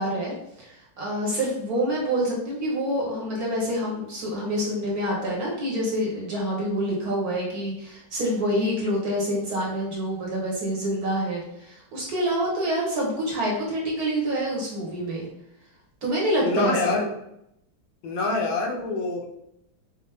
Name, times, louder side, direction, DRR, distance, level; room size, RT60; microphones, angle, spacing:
voice 1, 0.0-15.3 16.0-17.0, equal, 55° right, -4 dB, 1.3 m, -27 dB
voice 2, 16.4-17.1 18.0-19.2, left 3 dB, 75° left, 1 dB, 1.5 m, -26 dB
5.5 x 2.0 x 3.3 m, 0.79 s
omnidirectional pair, 2.2 m